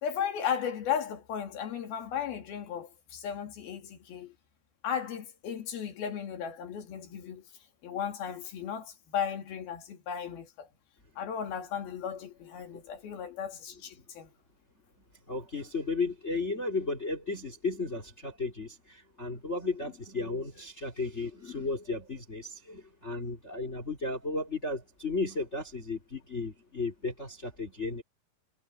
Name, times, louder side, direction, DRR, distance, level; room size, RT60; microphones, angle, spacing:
voice 1, 0.0-4.4 4.8-7.5 7.8-10.7 11.2-14.3, left 8 dB, 75° left, 4.4 m, -35 dB
voice 2, 15.3-28.0, left 3 dB, 20° left, 3.2 m, -34 dB
omnidirectional pair, 4.4 m